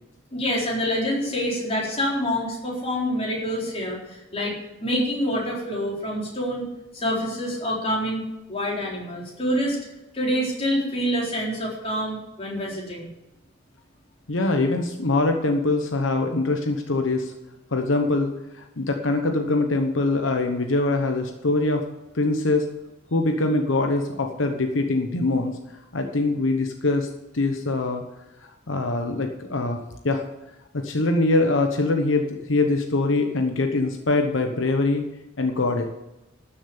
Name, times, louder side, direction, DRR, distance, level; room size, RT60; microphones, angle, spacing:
voice 1, 0.3-4.6 4.8-6.7 6.9-9.8 10.1-13.1, equal, 30° left, -4 dB, 4.0 m, -26 dB
voice 2, 14.3-17.3 17.7-21.8 22.1-22.7 23.1-25.6 25.9-27.1 27.3-28.0 28.7-29.8 30.0-30.2 30.7-35.0 35.4-35.9, left 2 dB, 75° left, 4 dB, 1.0 m, -23 dB
12.5 x 7.2 x 6.9 m, 1.0 s
head